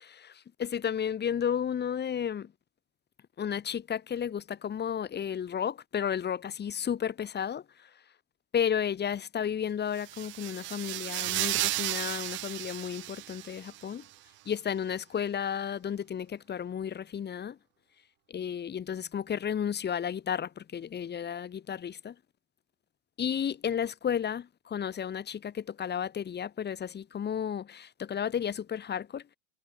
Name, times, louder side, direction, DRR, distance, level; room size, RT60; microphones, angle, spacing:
voice 1, 0.0-2.5 3.4-7.6 8.5-14.0 14.5-17.6 18.3-22.1 23.2-29.4, left 8 dB, 25° left, 1.3 m, -33 dB
sound 1, 10.0-13.8, right 19 dB, 30° right, 0.4 m, -34 dB
hypercardioid pair, 90°, 42 cm